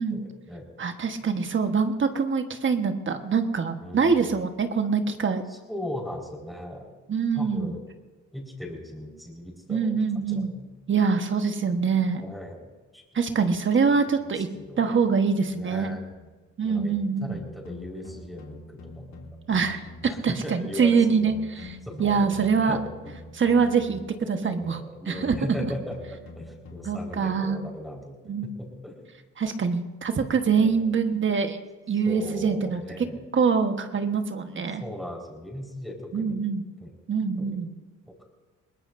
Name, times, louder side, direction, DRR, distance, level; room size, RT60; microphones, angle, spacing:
voice 1, 0.0-0.7 3.8-4.3 5.5-6.9 7.3-7.9 8.3-10.7 12.2-13.0 14.4-15.0 15.5-16.0 16.6-16.9 17.2-19.2 20.0-21.4 21.8-22.3 22.6-23.1 24.3-28.2 28.4-29.1 30.5-30.8 32.1-33.2 34.8-36.4 36.8-36.9 37.4-37.6, left 1 dB, ahead, -1 dB, 4.6 m, -38 dB
voice 2, 0.8-5.4 7.1-7.7 9.7-10.5 10.9-12.2 13.1-14.5 14.8-15.9 16.6-17.4 19.5-19.8 20.2-21.3 21.6-22.8 23.3-24.8 25.1-25.4 26.8-27.6 28.3-28.5 29.4-31.6 31.9-32.8 33.3-34.8 36.1-36.6 37.1-37.7, right 5 dB, 40° right, 7 dB, 1.3 m, -24 dB
sound 1, 16.1-16.4 17.3-20.3 21.2-24.2 25.2-27.4, left 2 dB, 65° left, 2.6 m, -45 dB
21.5 x 20.0 x 2.6 m, 1.3 s
cardioid pair, 90°, 30 cm